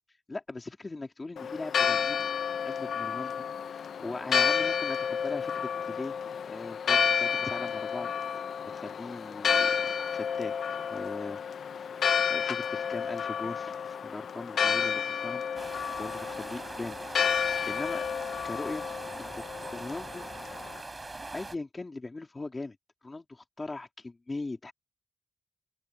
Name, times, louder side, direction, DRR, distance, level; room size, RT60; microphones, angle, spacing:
voice 1, 0.3-2.3 2.7-6.2 6.5-10.5 10.9-11.9 12.3-17.3 17.7-18.0 18.4-18.8 19.2-19.4 19.7-20.3 21.3-22.8 23.0-24.7, left 3 dB, 25° left, 3.7 m, -40 dB
Church bell, 1.4-20.8, left 7 dB, 70° left, 1.1 m, -31 dB
sound 1, 15.6-21.6, right 2 dB, 20° right, 5.0 m, -42 dB
open air
wide cardioid pair, 125°, 0 cm